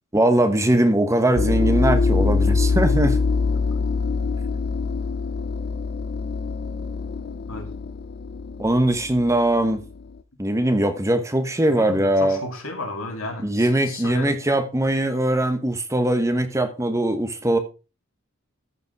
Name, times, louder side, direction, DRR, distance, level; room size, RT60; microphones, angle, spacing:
voice 1, 0.1-3.2 8.6-9.8 10.4-12.4 13.4-17.6, right 1 dB, 15° right, 1.1 m, -21 dB
sound 1, 1.4-10.1, left 4 dB, 50° left, 0.6 m, -24 dB
voice 2, 11.7-14.3, left 2 dB, 70° left, 2.8 m, -33 dB
14.0 x 5.2 x 4.7 m
head